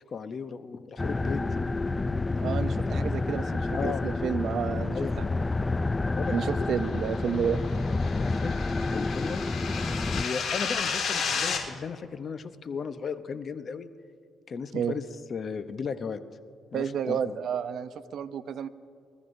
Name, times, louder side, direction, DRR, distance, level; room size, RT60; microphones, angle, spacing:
voice 1, 0.1-1.4 3.7-4.0 4.9-5.2 6.1-6.7 8.1-9.4 10.1-13.9 14.5-16.2 16.7-17.4, left 6 dB, 50° left, 11 dB, 0.7 m, -36 dB
sound 1, 1.0-10.2, left 3 dB, 20° left, 0.3 m, -29 dB
voice 2, 2.4-5.3 6.3-7.6 14.7-14.9 16.7-18.7, right 8 dB, 70° right, 12 dB, 0.6 m, -31 dB
sound 2, 7.1-11.6, left 6 dB, 65° left, 3.5 m, -32 dB
24.0 x 14.0 x 2.7 m, 2.3 s
cardioid pair, 90°, 0 cm